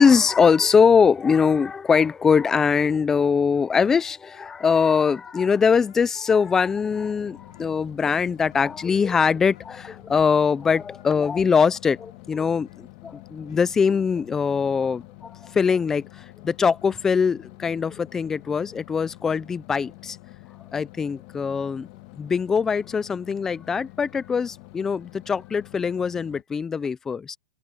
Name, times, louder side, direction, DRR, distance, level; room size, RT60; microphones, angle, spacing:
voice 1, 0.0-20.2 20.7-21.9 22.2-27.4, left 6 dB, 10° left, 0.4 m, -22 dB
sound 1, 4.3-23.8, left 12 dB, 75° left, 4.8 m, -60 dB
sound 2, 6.7-26.4, left 20 dB, 40° left, 1.6 m, -47 dB
open air
supercardioid pair, 160°, 4 cm